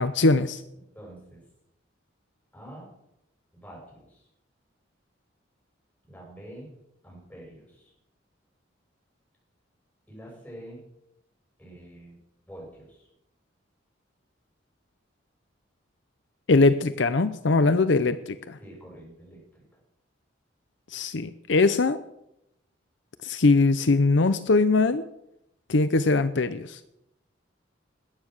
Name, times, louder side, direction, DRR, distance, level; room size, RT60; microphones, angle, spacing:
voice 1, 0.0-0.6 16.5-18.6 20.9-22.0 23.2-25.0 25.7-26.8, left 3 dB, 65° left, 12 dB, 0.7 m, -21 dB
voice 2, 0.7-1.4 2.5-2.9 3.5-4.3 6.0-6.7 7.0-7.9 10.1-10.8 11.6-12.2 12.5-13.1 18.6-19.6, right 1 dB, 10° left, -3 dB, 7.3 m, -46 dB
21.0 x 9.3 x 6.5 m, 0.82 s
head